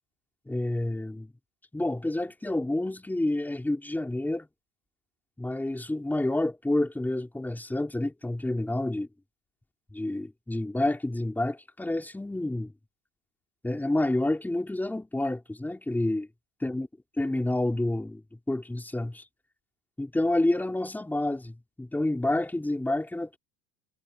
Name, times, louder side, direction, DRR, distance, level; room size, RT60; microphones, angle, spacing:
voice 1, 0.5-1.3 1.7-4.5 5.4-9.1 9.9-12.7 13.6-16.3 16.6-16.9 17.2-19.2 20.0-23.4, left 1 dB, 5° left, 3.6 m, -29 dB
supercardioid pair, 135°, 37 cm